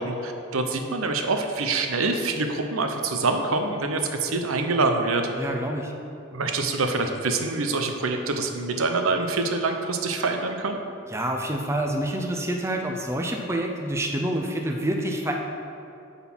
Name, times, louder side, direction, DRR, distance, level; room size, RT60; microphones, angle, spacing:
voice 1, 0.0-5.3 6.3-10.8, right 3 dB, 90° right, 5 dB, 0.8 m, -25 dB
voice 2, 5.4-5.9 11.1-15.4, right 1 dB, 15° right, 2 dB, 0.6 m, -27 dB
9.3 x 4.1 x 6.1 m, 2.7 s
head